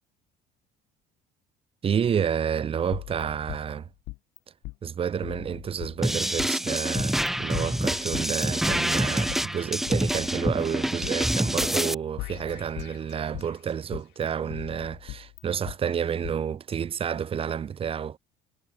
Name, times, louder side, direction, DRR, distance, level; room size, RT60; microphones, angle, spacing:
voice 1, 1.8-3.9 4.8-18.2, right 8 dB, 35° right, 4.0 m, -30 dB
sound 1, 2.9-4.4 4.6-4.8 5.2-6.5 7.0-7.3 7.5-9.4 9.9-11.3 11.6-11.7 12.2-13.5 13.9-15.8 16.2-16.3, left 23 dB, 80° left, 5.4 m, -40 dB
sound 2, 6.0-11.9, equal, ahead, 0.8 m, -26 dB
cardioid pair, 135°, 17 cm